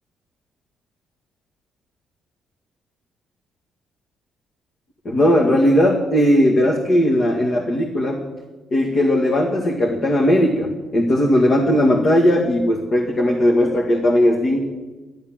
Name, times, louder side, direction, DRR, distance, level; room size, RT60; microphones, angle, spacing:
voice 1, 5.1-8.2 8.7-14.6, equal, 50° left, 1 dB, 1.9 m, -17 dB
11.5 x 11.0 x 7.6 m, 1.2 s
cardioid pair, 90°, 0 cm